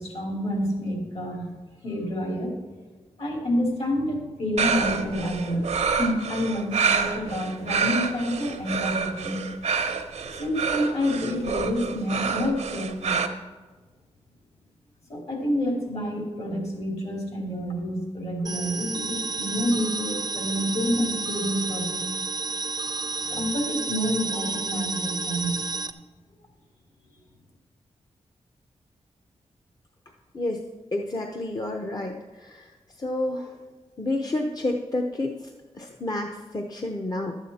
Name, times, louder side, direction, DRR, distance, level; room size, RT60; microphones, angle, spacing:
voice 1, 0.0-1.5 1.8-2.5 3.2-5.7 6.0-9.4 10.4-13.2 15.1-22.1 23.2-25.6, equal, 60° left, 0 dB, 2.8 m, -28 dB
sound 1, 4.6-13.3, right 5 dB, 75° right, 0.8 m, -27 dB
sound 2, 18.4-25.9, right 3 dB, 40° right, 0.5 m, -31 dB
voice 2, 30.9-33.6 34.0-37.4, left 2 dB, 35° left, 3 dB, 0.7 m, -30 dB
11.0 x 8.2 x 4.2 m, 1.3 s
cardioid pair, 80°, 11 cm